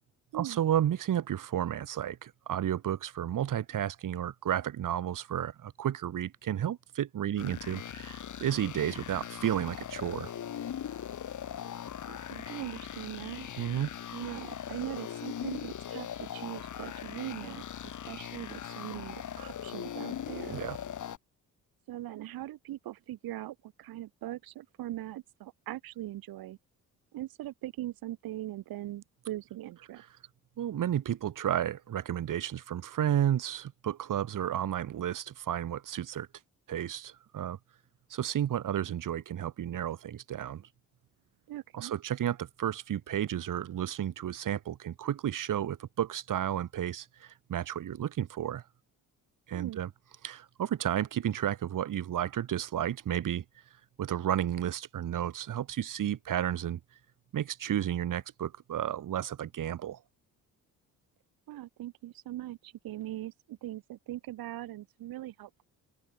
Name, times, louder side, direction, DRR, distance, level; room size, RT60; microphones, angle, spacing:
voice 1, 0.3-10.3 13.6-13.9 20.5-20.8 30.6-36.3 36.7-37.6 38.1-40.6 41.7-48.6 49.5-49.9 50.2-53.4 54.0-56.8 57.3-60.0, right 10 dB, 65° right, 2.5 m, -32 dB
sound 1, 7.4-21.2, left 9 dB, 55° left, 2.2 m, -40 dB
voice 2, 12.1-13.5 14.1-17.6 18.1-20.6 21.9-26.6 27.1-30.0 41.5-41.9 49.5-49.8 61.5-65.6, right 14 dB, 80° right, 2.4 m, -41 dB
open air
cardioid pair, 80°, 35 cm